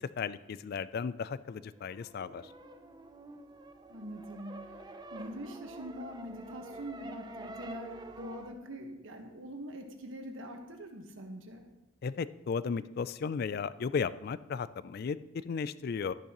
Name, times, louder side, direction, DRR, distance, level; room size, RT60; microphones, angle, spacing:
voice 1, 0.0-2.5 12.0-16.1, left 5 dB, 45° left, 16 dB, 0.3 m, -35 dB
sound 1, 1.6-8.5, right 2 dB, 20° right, 0.5 m, -48 dB
voice 2, 3.9-4.7 5.1-11.7, equal, 65° right, 3 dB, 1.3 m, -43 dB
12.0 x 10.5 x 3.0 m, 1.0 s
head